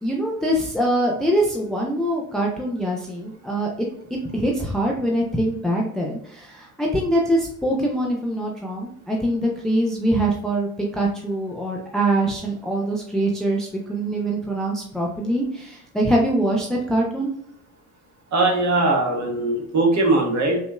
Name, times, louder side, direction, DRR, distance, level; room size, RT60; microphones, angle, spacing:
voice 1, 0.0-3.7 4.1-17.3, right 1 dB, ahead, -1 dB, 0.5 m, -23 dB
voice 2, 18.3-20.6, right 2 dB, 40° right, 0 dB, 1.5 m, -20 dB
5.2 x 2.9 x 2.2 m, 0.73 s
figure-of-eight pair, 60°, 45 cm